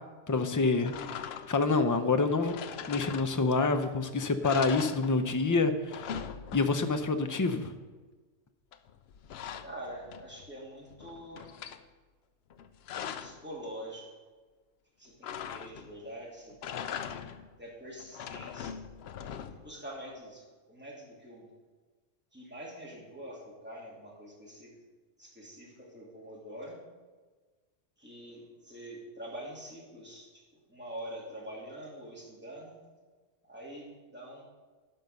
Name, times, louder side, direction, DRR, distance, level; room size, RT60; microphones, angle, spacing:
voice 1, 0.3-1.0 1.5-2.5 2.9-6.2 6.5-7.7 17.1-17.2, left 3 dB, 25° left, 8 dB, 0.5 m, -27 dB
sound 1, 0.8-1.7 2.4-3.7 4.0-4.1 4.4-5.5 5.7-7.0 8.7-10.5 10.9-11.8 12.5-13.4 15.2-16.0 16.5-17.5 18.0-19.8, left 8 dB, 70° left, 0.8 m, -41 dB
voice 2, 9.6-11.5 13.2-14.1 15.0-17.0 17.6-18.8 19.4-21.5 22.3-24.7 25.2-26.8 28.0-30.4 30.7-32.7 33.5-34.4, right 1 dB, 10° right, -5 dB, 2.7 m, -45 dB
12.0 x 5.4 x 6.6 m, 1.4 s
omnidirectional pair, 1.1 m